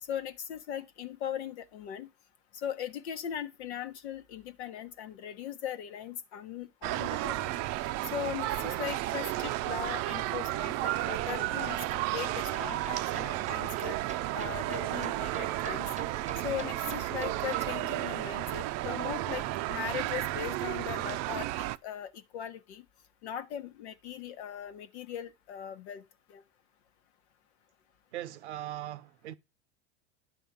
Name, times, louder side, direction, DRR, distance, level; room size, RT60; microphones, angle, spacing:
voice 1, 0.0-2.1 2.5-7.6 8.0-14.0 14.3-15.9 16.4-22.8 23.2-26.0 26.3-26.4, left 9 dB, 75° left, 1.2 m, -39 dB
sound 1, 6.8-21.8, right 16 dB, 55° right, 0.5 m, -33 dB
sound 2, 11.3-17.8, right 6 dB, 20° right, 0.8 m, -43 dB
voice 2, 28.1-29.3, right 13 dB, 85° right, 0.7 m, -39 dB
9.6 x 3.8 x 7.3 m
hypercardioid pair, 90°, 33 cm